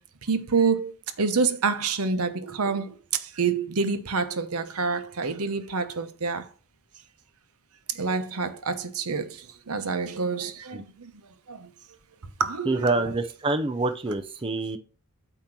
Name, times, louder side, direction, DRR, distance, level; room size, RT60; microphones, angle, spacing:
voice 1, 0.3-0.9 1.2-2.9 3.4-6.4 8.0-9.3 9.7-10.8 11.5-11.6 12.4-13.2, right 4 dB, 85° right, 0.9 m, -27 dB
voice 2, 12.7-14.8, right 2 dB, 25° right, 0.5 m, -26 dB
8.7 x 3.0 x 6.0 m
head